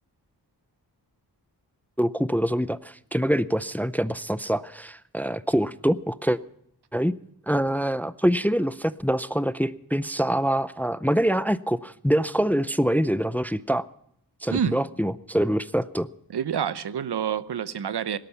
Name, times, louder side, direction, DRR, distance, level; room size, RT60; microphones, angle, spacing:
voice 1, 2.0-6.4 6.9-7.2 7.5-13.9 14.4-16.1, equal, 5° left, 0.5 m, -25 dB
voice 2, 14.5-14.8 16.3-18.2, right 8 dB, 75° right, 0.9 m, -27 dB
17.5 x 12.5 x 5.7 m
cardioid pair, 65°, 40 cm